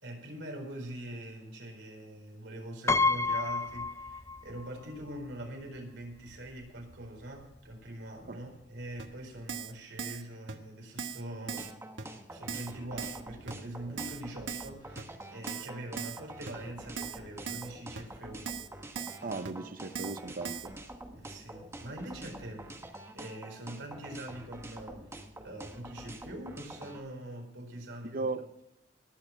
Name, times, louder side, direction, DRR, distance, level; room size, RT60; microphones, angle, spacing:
voice 1, 0.0-11.7 12.3-18.5 21.1-28.2, right 1 dB, 70° right, 1 dB, 4.3 m, -43 dB
Piano, 2.9-4.7 5.0-5.1 6.3-6.4 6.7-6.9, left 3 dB, 15° left, 0.5 m, -29 dB
Keyboard (musical), 9.0-9.1 9.5-9.7 10.0-10.2 10.5-10.6 11.0-11.2 11.5-11.7 12.0-12.1 12.5-12.7 13.0-13.2 13.5-13.6 14.0-14.2 14.5-14.7 15.0-15.1 15.5-15.7 16.0-16.2 16.5-16.6 17.0-17.2 17.5-17.7 18.0-18.1 18.5-18.7 19.0-19.2 19.5-19.6 20.0-20.2 20.4-20.7, right 6 dB, 90° right, 1.3 m, -38 dB
sound 1, 11.6-27.0, right 1 dB, 15° right, 1.3 m, -46 dB
voice 2, 19.2-20.8 28.0-28.4, right 3 dB, 50° right, 10 dB, 0.7 m, -36 dB
19.0 x 7.0 x 5.7 m, 0.89 s
head